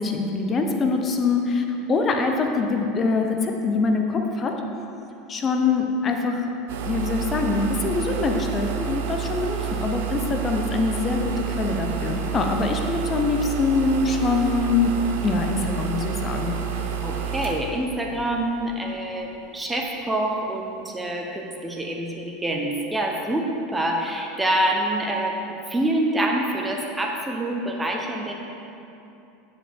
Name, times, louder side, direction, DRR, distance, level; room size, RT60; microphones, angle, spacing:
voice 1, 0.0-4.6 5.3-6.5 6.8-15.0 15.2-16.6, left 4 dB, 30° left, 3 dB, 0.7 m, -24 dB
sound 1, 6.7-19.1, right 7 dB, 75° right, 0.7 m, -29 dB
voice 2, 17.0-28.3, right 1 dB, 10° right, 1 dB, 0.8 m, -26 dB
9.6 x 5.0 x 3.5 m, 2.7 s
hypercardioid pair, 95°, 0 cm